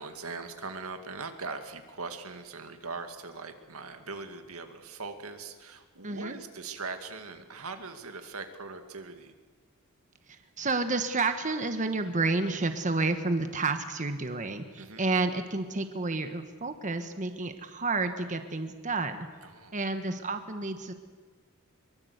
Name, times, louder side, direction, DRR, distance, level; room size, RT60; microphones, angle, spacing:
voice 1, 0.0-9.3 14.8-15.0 19.4-19.8, right 4 dB, 85° right, 7 dB, 2.1 m, -41 dB
voice 2, 6.0-6.4 10.6-19.3 19.7-20.9, right 3 dB, 35° right, 8 dB, 1.4 m, -30 dB
23.5 x 23.0 x 8.2 m, 1.5 s
head